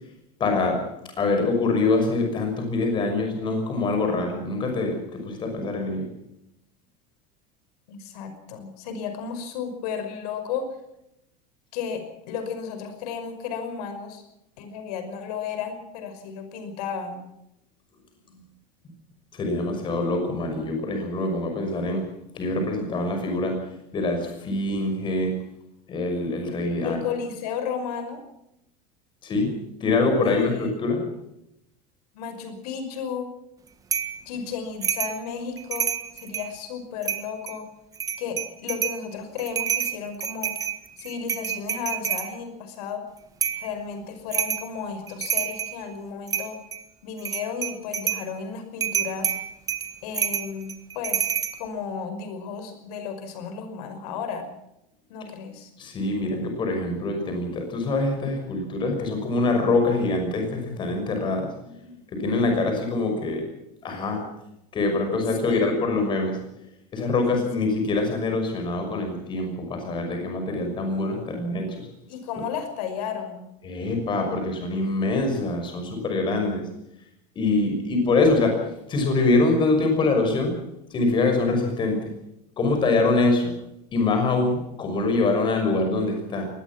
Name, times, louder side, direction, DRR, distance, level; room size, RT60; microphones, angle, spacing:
voice 1, 0.4-0.8 1.2-6.1 19.3-22.0 22.3-23.6 23.9-25.3 25.9-27.0 29.2-31.0 55.8-63.5 63.8-64.2 64.7-66.4 66.9-71.9 73.6-76.7 77.4-80.6 80.9-82.0 82.6-83.5 83.9-86.5, left 3 dB, 25° left, 4 dB, 6.1 m, -24 dB
voice 2, 7.9-10.7 11.7-14.2 14.6-17.2 26.8-28.2 30.2-30.7 32.1-33.3 34.3-37.7 38.2-40.5 41.0-43.0 43.5-46.6 47.0-49.4 50.0-51.3 51.6-54.5 55.1-55.7 65.4-65.9 67.3-67.7 72.1-73.5, left 6 dB, 90° left, 8 dB, 5.6 m, -33 dB
sound 1, 33.9-34.2 34.8-35.2 35.6-36.5 37.0-37.6 38.0-39.0 39.4-42.3 43.4-43.7 44.3-44.7 45.1-45.8 46.3-46.8 47.2-48.3 48.8-51.5, right 8 dB, 20° right, 1.5 m, -28 dB
23.0 x 19.5 x 6.1 m, 0.83 s
cardioid pair, 170°, 19 cm